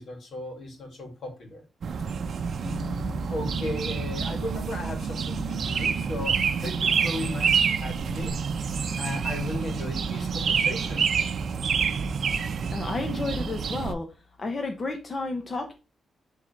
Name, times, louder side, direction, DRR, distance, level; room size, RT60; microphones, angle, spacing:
voice 1, 0.0-1.6 2.6-8.4 9.0-11.1, left 2 dB, 65° left, 2 dB, 2.4 m, -35 dB
sound 1, 1.8-13.9, right 6 dB, 50° right, 0.7 m, -28 dB
voice 2, 12.7-14.1 14.4-15.7, left 3 dB, 30° left, 4 dB, 0.8 m, -31 dB
11.0 x 3.7 x 3.3 m, 0.31 s
wide cardioid pair, 165°, 0 cm